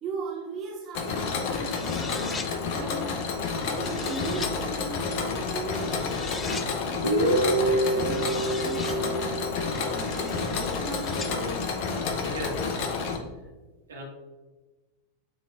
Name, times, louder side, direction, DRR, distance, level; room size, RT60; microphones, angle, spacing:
voice 1, 0.0-7.3 7.8-12.0, right 4 dB, 30° right, -1 dB, 0.9 m, -39 dB
Mechanisms, 0.9-13.2, left 4 dB, 45° left, 0.9 m, -30 dB
sound 1, 1.5-2.5 3.5-4.5 5.7-6.7 7.8-9.0 9.7-11.3, left 4 dB, 15° left, 0.5 m, -40 dB
Guitar, 7.0-10.9, right 1 dB, 85° left, 0.9 m, -27 dB
voice 2, 12.1-12.6 13.9-14.0, right 1 dB, 70° right, -2 dB, 1.9 m, -36 dB
9.1 x 3.6 x 3.7 m, 1.2 s
figure-of-eight pair, 90°, 0 cm